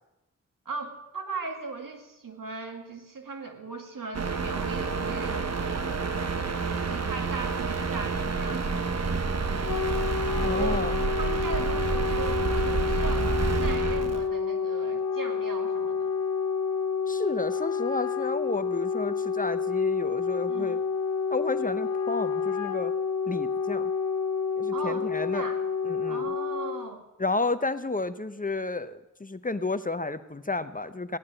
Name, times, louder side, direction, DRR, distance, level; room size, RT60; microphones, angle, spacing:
voice 1, 0.7-6.0 6.8-9.7 10.5-10.8 11.2-13.3 13.6-16.1 20.5-20.9 24.7-25.6 26.1-27.0, right 3 dB, 85° right, 4 dB, 2.2 m, -38 dB
sound 1, 4.1-14.3, right 4 dB, 50° right, 1.2 m, -29 dB
Wind instrument woodwind instrument, 9.4-26.9, left 5 dB, 60° left, 1.2 m, -29 dB
voice 2, 10.4-11.0 17.1-20.8 21.3-22.9 23.3-23.9 24.6-25.5 25.9-26.2 27.2-31.2, left 3 dB, 25° left, 12 dB, 0.8 m, -31 dB
16.5 x 11.0 x 7.6 m, 0.99 s
cardioid pair, 45°, 32 cm